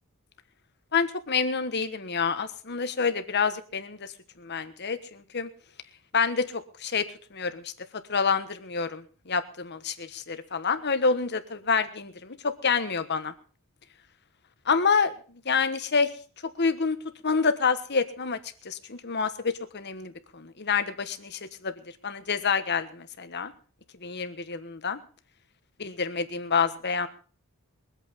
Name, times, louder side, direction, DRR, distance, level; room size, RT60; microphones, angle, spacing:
voice 1, 0.9-5.5 6.1-7.0 7.3-7.7 8.1-13.3 14.6-15.1 15.4-16.1 16.6-17.0 17.2-18.4 18.6-21.7 22.0-23.5 24.0-25.0 25.8-27.1, left 5 dB, 50° left, 10 dB, 1.4 m, -27 dB
22.5 x 8.5 x 5.3 m, 0.40 s
head